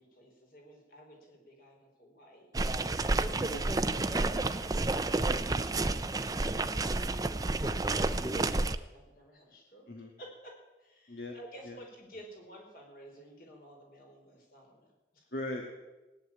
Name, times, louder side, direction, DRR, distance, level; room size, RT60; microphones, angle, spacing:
voice 1, 0.0-2.5 4.1-5.2 5.5-7.3 7.7-9.9 10.2-15.3, equal, 55° left, 0 dB, 4.9 m, -53 dB
sound 1, 2.5-8.8, right 2 dB, 20° right, 0.5 m, -30 dB
voice 2, 15.3-15.6, left 1 dB, 75° left, 2 dB, 1.6 m, -40 dB
17.0 x 9.6 x 8.8 m, 1.1 s
head